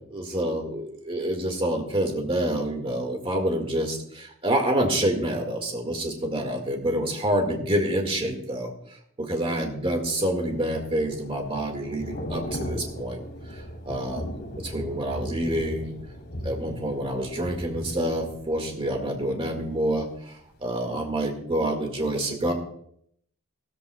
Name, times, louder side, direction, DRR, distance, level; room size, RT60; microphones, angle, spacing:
voice 1, 0.1-8.7 9.2-13.2 13.5-15.9 16.4-20.1 20.6-22.5, right 1 dB, 25° right, 3 dB, 2.0 m, -27 dB
Thunder / Rain, 10.3-20.2 20.5-20.8, equal, 50° left, 1.8 m, -38 dB
16.0 x 14.0 x 2.4 m, 0.68 s
head